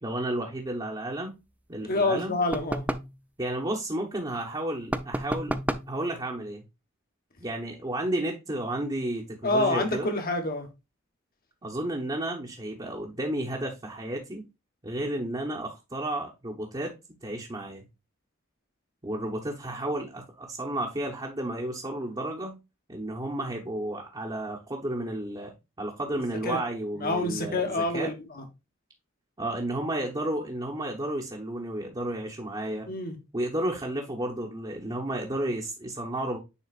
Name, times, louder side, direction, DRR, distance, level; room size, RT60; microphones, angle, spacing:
voice 1, 0.0-1.4 1.7-2.4 3.4-5.6 5.9-6.6 7.4-10.1 11.6-14.4 14.8-16.9 17.2-17.8 19.0-22.6 22.9-28.1 29.4-32.9 33.3-36.4, right 1 dB, 25° right, 1.1 m, -32 dB
voice 2, 1.8-2.8 9.4-10.7 26.4-26.6 27.0-28.4 32.9-33.2, left 2 dB, 50° left, 1.5 m, -27 dB
sound 1, 2.5-3.2 4.9-6.0, right 1 dB, 5° right, 0.4 m, -30 dB
9.8 x 3.9 x 2.4 m
head